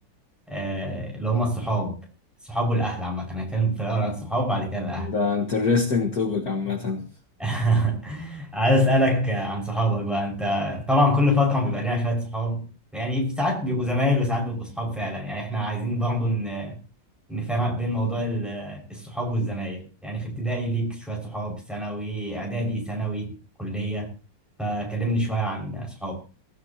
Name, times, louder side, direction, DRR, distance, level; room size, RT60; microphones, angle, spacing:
voice 1, 0.5-2.0 2.4-5.1 7.4-16.8 17.3-24.1 24.6-26.2, equal, ahead, 5.8 m, -26 dB
voice 2, 5.0-7.1, left 4 dB, 55° left, 2.1 m, -24 dB
22.5 x 14.0 x 2.9 m
omnidirectional pair, 2.0 m